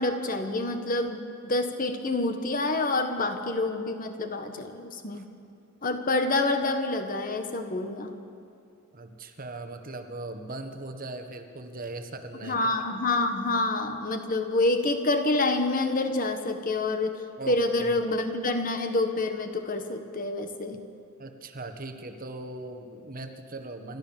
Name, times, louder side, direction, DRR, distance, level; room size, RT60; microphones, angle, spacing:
voice 1, 0.0-5.3 5.8-8.2 12.4-17.2 17.5-20.8, left 2 dB, 40° left, 6 dB, 1.4 m, -27 dB
voice 2, 8.9-12.8 17.4-17.9 21.2-24.0, right 2 dB, 40° right, 6 dB, 1.4 m, -39 dB
28.5 x 12.5 x 7.3 m, 2.5 s
head